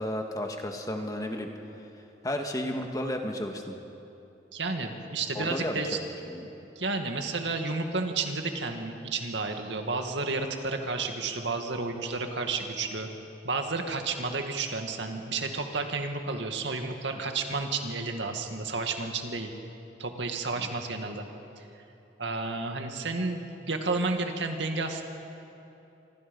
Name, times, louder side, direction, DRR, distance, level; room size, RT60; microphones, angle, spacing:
voice 1, 0.0-1.5 2.2-3.8 5.3-5.8 6.3-6.4 20.6-20.7, left 1 dB, 20° left, 3 dB, 1.8 m, -32 dB
voice 2, 4.5-6.0 6.8-13.1 13.4-19.5 20.0-21.3 21.6-21.7 22.2-25.0, right 3 dB, 85° right, 4 dB, 2.1 m, -31 dB
26.5 x 25.0 x 5.5 m, 2.9 s
head